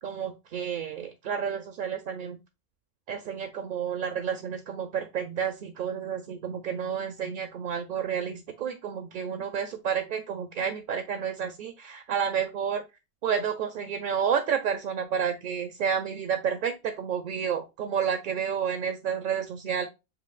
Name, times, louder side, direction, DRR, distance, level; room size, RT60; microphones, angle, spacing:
voice 1, 0.0-2.4 3.1-12.8 13.2-19.8, right 7 dB, 60° right, 8 dB, 0.6 m, -30 dB
6.9 x 2.6 x 2.3 m, 0.26 s
omnidirectional pair, 1.0 m